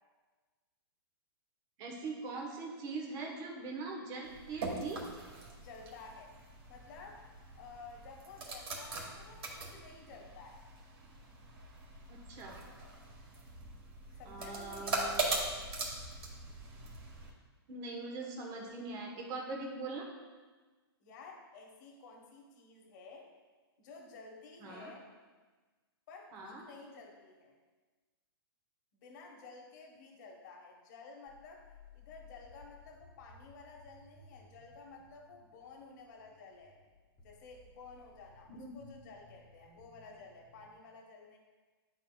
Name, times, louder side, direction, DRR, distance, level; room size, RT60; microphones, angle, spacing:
voice 1, 1.8-5.1 12.1-12.6 14.2-15.3 17.7-20.1 24.6-24.9 26.3-26.6 38.5-38.7, right 3 dB, 30° right, 1 dB, 1.1 m, -42 dB
sound 1, 4.2-17.3, right 3 dB, 75° right, 1.9 m, -41 dB
voice 2, 5.6-6.3 6.7-7.2 7.5-10.6 14.2-15.5 21.0-23.3 23.8-25.0 26.1-27.5 29.0-31.6 31.9-36.7 37.2-41.4, left 4 dB, 45° left, 0 dB, 1.2 m, -52 dB
sound 2, 31.3-40.7, left 3 dB, 10° left, 1.3 m, -60 dB
10.5 x 4.3 x 2.3 m, 1.3 s
hypercardioid pair, 155°, 13 cm